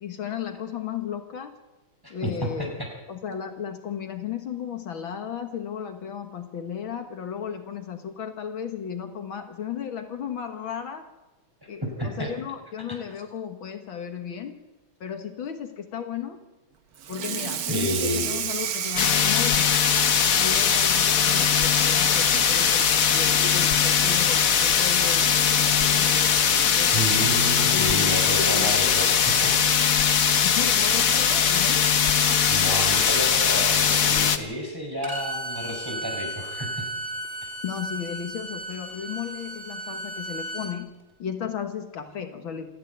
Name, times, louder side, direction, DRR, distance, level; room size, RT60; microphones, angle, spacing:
voice 1, 0.0-1.6 2.1-2.8 3.1-11.0 11.7-14.6 15.0-16.4 17.1-19.7 20.4-27.0 27.7-28.8 30.4-31.8 37.6-40.9 41.2-42.8, left 8 dB, 70° left, 6 dB, 2.2 m, -34 dB
voice 2, 2.0-2.5 2.8-2.9 11.6-12.3 17.7-18.3 26.9-29.5 32.5-36.9, equal, 10° right, 1 dB, 5.0 m, -30 dB
Water tap faucet / Sink (filling or washing), 17.0-23.6 24.0-24.3 24.6-24.7 25.1-25.2 26.4-26.5 26.9-27.1, right 8 dB, 80° right, 2.2 m, -34 dB
sound 1, 19.0-34.4, left 7 dB, 50° left, 1.3 m, -20 dB
Bowed string instrument, 35.0-40.7, right 1 dB, 30° right, 2.9 m, -35 dB
28.0 x 10.0 x 9.2 m, 1.0 s
omnidirectional pair, 2.3 m